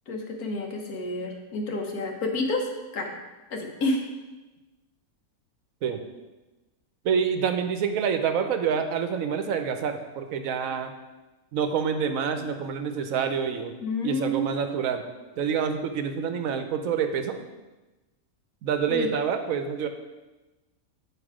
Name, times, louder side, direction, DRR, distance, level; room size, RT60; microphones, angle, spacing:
voice 1, 0.1-3.1 3.5-4.0 13.8-14.5 18.9-19.1, left 1 dB, 75° left, 2 dB, 1.6 m, -29 dB
voice 2, 7.0-10.9 11.5-13.7 14.0-15.0 15.4-17.4 18.6-19.9, right 7 dB, 65° right, 7 dB, 1.1 m, -27 dB
8.1 x 5.0 x 4.9 m, 1.1 s
omnidirectional pair, 1.6 m